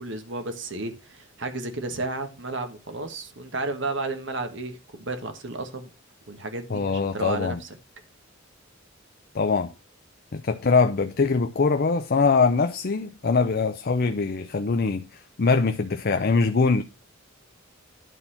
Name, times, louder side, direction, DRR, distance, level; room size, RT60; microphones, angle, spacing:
voice 1, 0.0-5.9 6.3-7.8, right 2 dB, 65° right, 1.6 m, -33 dB
voice 2, 6.7-7.6 9.3-9.7 10.3-16.8, left 4 dB, 50° left, 0.6 m, -23 dB
11.0 x 4.2 x 5.6 m
head